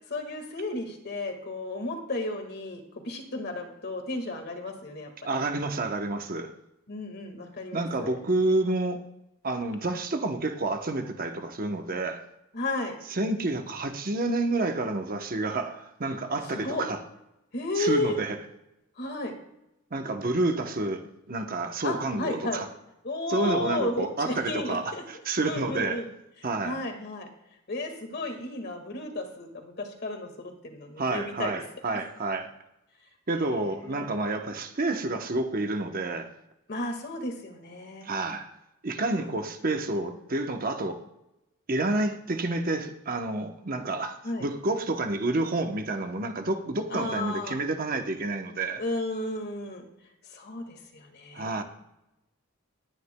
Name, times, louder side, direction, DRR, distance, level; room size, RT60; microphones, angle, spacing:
voice 1, 0.1-5.4 6.9-8.2 12.5-12.9 16.5-16.8 17.5-18.2 19.0-19.3 21.8-22.6 23.0-25.0 25.4-26.1 26.6-27.3 27.7-31.6 33.3-34.1 36.7-38.1 39.1-39.4 44.2-44.5 46.9-47.6 48.8-49.9 50.3-51.6, left 2 dB, 50° left, 1.8 m, -33 dB
voice 2, 5.2-6.5 7.7-9.0 9.4-12.2 13.1-17.0 17.8-18.4 19.9-21.0 21.3-22.7 23.3-26.0 26.4-26.8 31.0-32.5 33.3-36.3 38.0-38.5 38.8-41.0 41.7-48.8 51.3-51.6, right 2 dB, 45° right, 0.9 m, -29 dB
19.0 x 9.7 x 2.2 m
head